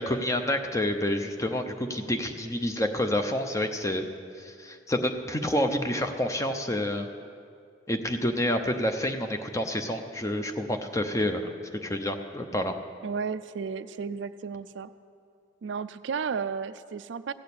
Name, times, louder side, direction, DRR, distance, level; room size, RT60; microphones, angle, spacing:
voice 1, 0.0-4.1 4.4-7.1 7.9-11.5 11.8-12.7, left 1 dB, 15° left, 6 dB, 0.7 m, -28 dB
voice 2, 13.0-14.9 15.6-17.3, right 6 dB, 70° right, 13 dB, 0.4 m, -33 dB
16.0 x 6.4 x 8.5 m, 2.3 s
head